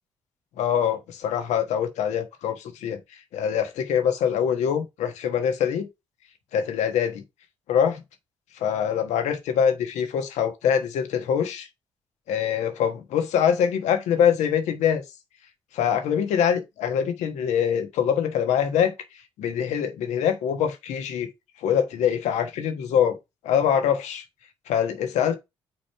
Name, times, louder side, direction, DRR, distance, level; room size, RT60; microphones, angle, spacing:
voice 1, 0.6-3.0 3.3-5.9 6.5-7.2 7.7-8.0 8.5-11.7 12.3-15.0 15.7-18.9 19.4-21.3 21.6-23.2 23.4-24.2 24.7-25.4, left 8 dB, 75° left, 1.3 m, -24 dB
6.1 x 4.2 x 4.7 m
hypercardioid pair, 45°, 12 cm